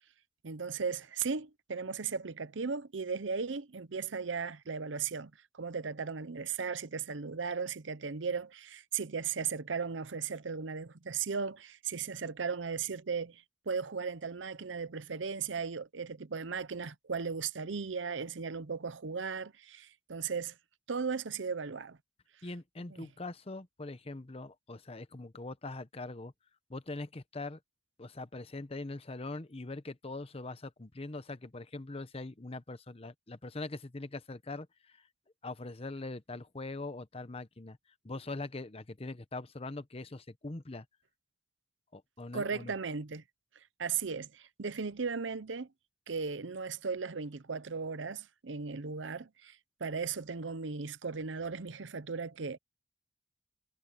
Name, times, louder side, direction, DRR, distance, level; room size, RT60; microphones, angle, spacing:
voice 1, 0.4-20.5 20.9-22.0 22.9-23.1 42.3-43.2 43.8-45.7 46.1-52.6, right 5 dB, 90° right, 0.8 m, -36 dB
voice 2, 22.4-26.3 26.7-27.6 28.0-35.1 35.4-37.8 38.0-40.8 41.9-42.7, left 2 dB, 30° left, 0.9 m, -42 dB
head